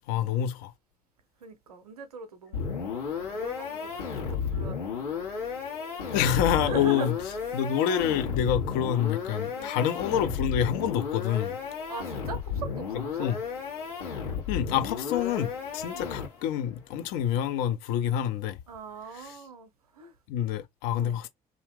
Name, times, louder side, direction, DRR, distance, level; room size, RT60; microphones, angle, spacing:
voice 1, 0.1-0.7 6.1-7.1 7.5-11.6 13.2-13.4 14.5-18.6 19.1-19.3 20.3-21.3, left 9 dB, 60° left, 0.6 m, -27 dB
voice 2, 1.4-5.2 6.5-7.1 7.5-7.6 9.5-9.9 11.9-13.3 15.9-16.1 18.7-20.1 21.0-21.2, right 5 dB, 80° right, 0.6 m, -41 dB
sound 1, 2.5-16.6, left 6 dB, 75° left, 1.4 m, -33 dB
2.7 x 2.3 x 3.4 m
figure-of-eight pair, 50°, 19 cm